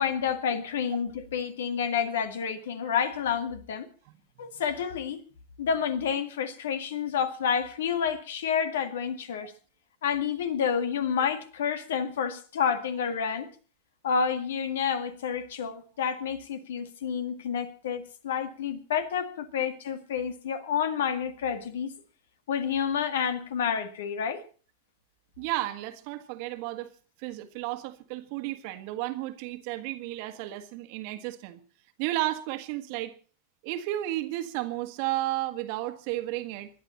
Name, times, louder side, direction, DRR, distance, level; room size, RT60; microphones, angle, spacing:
voice 1, 0.0-3.9 4.4-5.2 5.6-9.5 10.0-13.5 14.0-21.9 22.5-24.4, left 7 dB, 60° left, 1.9 m, -29 dB
voice 2, 4.0-4.5 25.4-26.9 27.2-31.6 32.0-33.1 33.6-36.7, right 16 dB, 45° right, 1.7 m, -33 dB
26.5 x 11.5 x 4.2 m
figure-of-eight pair, 90°, 0 cm